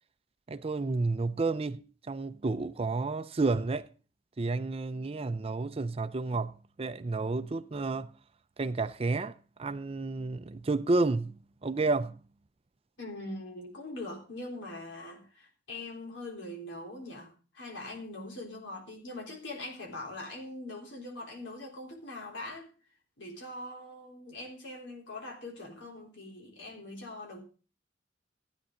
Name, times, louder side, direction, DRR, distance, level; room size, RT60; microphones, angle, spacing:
voice 1, 0.5-1.8 2.1-3.9 4.4-8.1 8.6-12.2, right 3 dB, 30° right, 0.5 m, -31 dB
voice 2, 13.0-22.7 23.2-27.4, left 2 dB, 75° left, 3.8 m, -42 dB
15.5 x 9.5 x 3.8 m
head